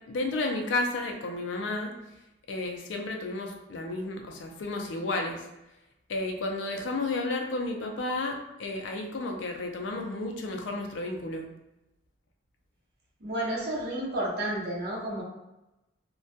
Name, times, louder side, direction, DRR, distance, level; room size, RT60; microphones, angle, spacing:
voice 1, 0.1-1.9 2.5-5.4 6.1-11.5, left 2 dB, 85° left, 3 dB, 0.4 m, -32 dB
voice 2, 13.2-15.2, right 1 dB, 60° right, -4 dB, 0.7 m, -31 dB
2.2 x 2.1 x 2.6 m, 0.95 s
head